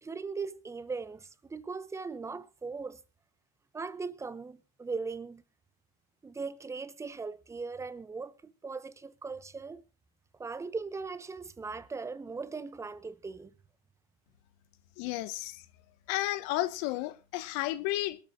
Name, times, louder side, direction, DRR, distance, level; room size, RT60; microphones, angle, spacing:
voice 1, 0.0-3.0 3.7-5.4 6.2-9.8 10.4-13.5, right 4 dB, 15° right, 1.0 m, -39 dB
voice 2, 15.0-15.6 16.1-18.2, left 16 dB, 65° left, 1.5 m, -32 dB
22.5 x 13.0 x 2.6 m
supercardioid pair, 120°, 20 cm